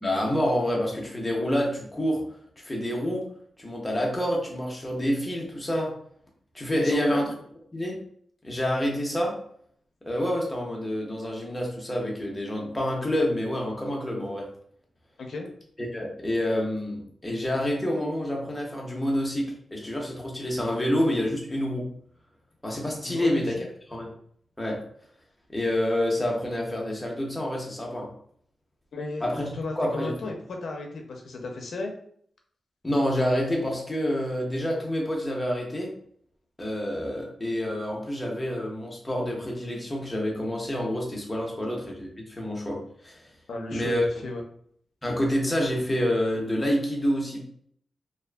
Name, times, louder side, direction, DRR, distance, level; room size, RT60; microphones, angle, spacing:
voice 1, 0.0-2.2 2.6-3.3 3.6-5.9 6.5-7.2 7.7-8.0 8.4-9.4 10.1-14.5 15.8-21.9 22.6-23.5 23.9-24.1 24.6-24.8 25.5-28.1 29.2-30.3 32.8-35.9 36.6-43.3 43.7-44.1 45.0-47.4, equal, 15° left, -2 dB, 0.6 m, -28 dB
voice 2, 6.7-7.3 15.2-15.5 23.0-23.6 28.9-31.9 43.5-44.4, left 2 dB, 70° left, 2 dB, 0.5 m, -35 dB
2.5 x 2.4 x 2.2 m, 0.63 s
wide cardioid pair, 145°, 0 cm